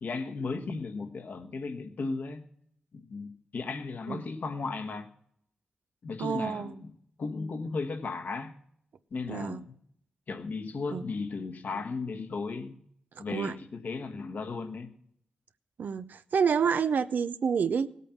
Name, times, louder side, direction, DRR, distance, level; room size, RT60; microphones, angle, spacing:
voice 1, 0.0-2.5 2.9-5.1 6.0-6.9 7.2-8.5 9.1-9.8 10.3-12.8 13.2-14.9, left 4 dB, 65° left, 1.4 m, -35 dB
voice 2, 6.2-6.8 9.3-9.6 10.9-11.0 13.2-13.5 15.8-17.9, right 6 dB, 75° right, 0.6 m, -28 dB
17.0 x 8.3 x 5.8 m
cardioid pair, 85°, 3 cm